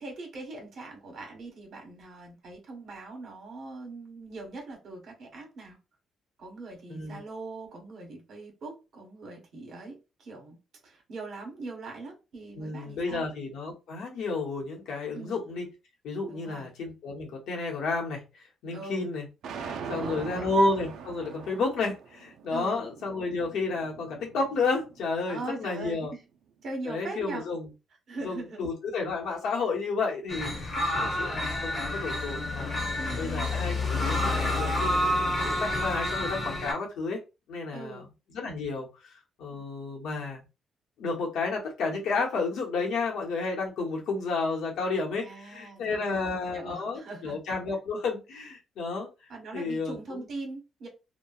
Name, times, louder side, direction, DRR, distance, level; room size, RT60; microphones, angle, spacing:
voice 1, 0.0-5.8 6.4-10.6 10.8-13.3 15.1-15.4 16.3-16.7 18.7-19.1 19.8-20.5 22.5-22.8 25.3-26.2 26.6-27.5 28.1-28.6 33.0-33.5 37.7-38.1 39.5-39.6 45.2-47.4 49.3-50.9, right 2 dB, 60° right, 1.2 m, -41 dB
voice 2, 6.9-7.2 12.6-15.6 16.0-19.3 19.5-26.1 26.8-27.7 28.2-30.5 31.2-32.9 33.2-35.0 35.4-37.2 37.5-38.0 38.3-40.4 41.0-49.1 49.5-50.2, left 3 dB, 80° left, 1.0 m, -31 dB
sound 1, 19.4-25.6, right 6 dB, 80° right, 0.3 m, -42 dB
sound 2, 30.3-36.7, left 1 dB, 35° left, 1.0 m, -29 dB
2.9 x 2.2 x 2.3 m
cardioid pair, 90°, 0 cm